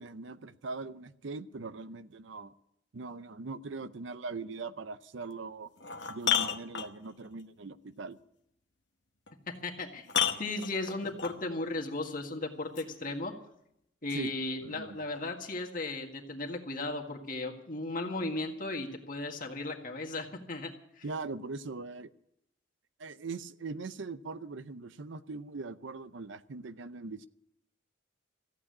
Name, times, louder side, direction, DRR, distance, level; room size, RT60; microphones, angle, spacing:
voice 1, 0.0-2.5 2.9-5.7 6.1-8.2 10.3-10.4 14.1-14.3 14.6-15.0 21.0-22.1 23.0-27.3, right 3 dB, 70° right, 14 dB, 0.6 m, -41 dB
sound 1, 5.2-5.3 5.8-7.3 9.3-9.4 10.1-11.4 12.8-12.9, left 8 dB, 60° left, 1.1 m, -31 dB
voice 2, 9.6-10.1 10.4-13.3 14.0-20.7 21.0-21.1, left 2 dB, 45° left, 2 dB, 1.8 m, -36 dB
14.5 x 8.6 x 9.6 m, 0.78 s
head